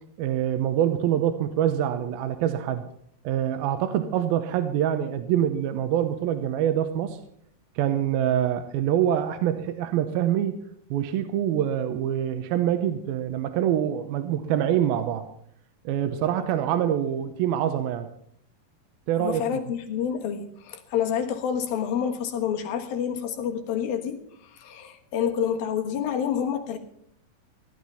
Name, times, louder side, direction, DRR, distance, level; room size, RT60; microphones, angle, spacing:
voice 1, 0.2-2.9 3.2-7.2 7.8-10.6 10.9-15.3 15.9-18.1 19.1-19.4, right 10 dB, 85° right, 9 dB, 2.6 m, -25 dB
voice 2, 19.2-26.8, left 8 dB, 75° left, 4 dB, 3.3 m, -28 dB
15.5 x 12.0 x 5.6 m, 0.69 s
omnidirectional pair, 4.3 m